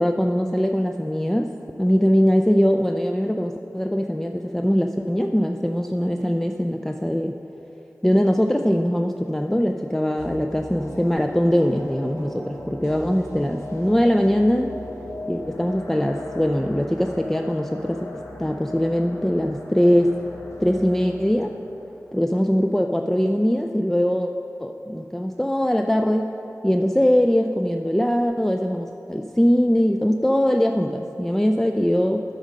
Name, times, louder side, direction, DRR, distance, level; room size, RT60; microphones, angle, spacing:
voice 1, 0.0-7.4 8.0-14.8 15.3-20.1 20.6-21.5 22.1-24.3 24.6-26.3 26.6-32.2, equal, 5° left, 4 dB, 0.3 m, -21 dB
sound 1, 10.2-23.3 23.6-23.7, left 1 dB, 55° left, 1.3 m, -38 dB
9.1 x 5.4 x 6.1 m, 2.9 s
wide cardioid pair, 50°, 6 cm